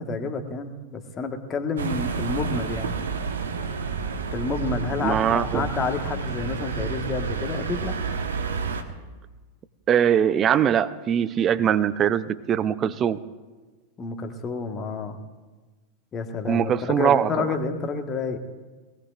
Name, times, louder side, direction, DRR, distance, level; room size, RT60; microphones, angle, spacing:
voice 1, 0.0-3.0 4.3-7.9 14.0-15.2 16.1-18.4, left 4 dB, 25° left, 5 dB, 1.6 m, -29 dB
sound 1, 1.8-8.8, right 5 dB, 65° right, 1.3 m, -30 dB
voice 2, 5.0-5.7 9.9-13.2 16.4-17.4, right 9 dB, 30° right, 13 dB, 0.7 m, -22 dB
23.5 x 18.5 x 2.6 m, 1.3 s
figure-of-eight pair, 90°, 0 cm